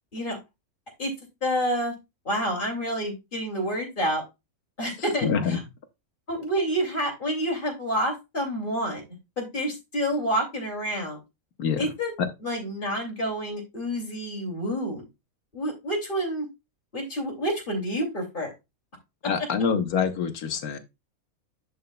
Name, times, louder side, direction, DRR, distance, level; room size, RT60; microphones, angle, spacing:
voice 1, 1.4-1.9 2.2-4.2 4.8-5.6 6.3-9.0 9.4-11.2 11.8-12.1 12.4-15.0 15.5-16.5 16.9-18.5, equal, 35° left, 2.8 m, -28 dB
voice 2, 5.2-5.6 11.6-11.9 12.2-12.3 19.2-20.8, left 6 dB, 80° left, 1.5 m, -25 dB
10.5 x 5.3 x 2.3 m
omnidirectional pair, 1.5 m